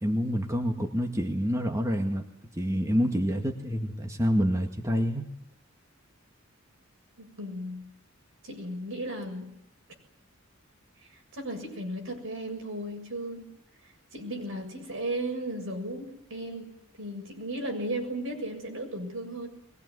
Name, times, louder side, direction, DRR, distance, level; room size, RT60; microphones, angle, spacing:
voice 1, 0.0-2.2 2.5-5.2, equal, 15° right, 2 dB, 2.0 m, -27 dB
voice 2, 7.2-7.8 8.4-9.5 11.3-13.5 14.1-16.7 17.0-19.5, right 1 dB, 75° right, 3 dB, 7.1 m, -35 dB
22.5 x 21.0 x 9.7 m, 0.76 s
head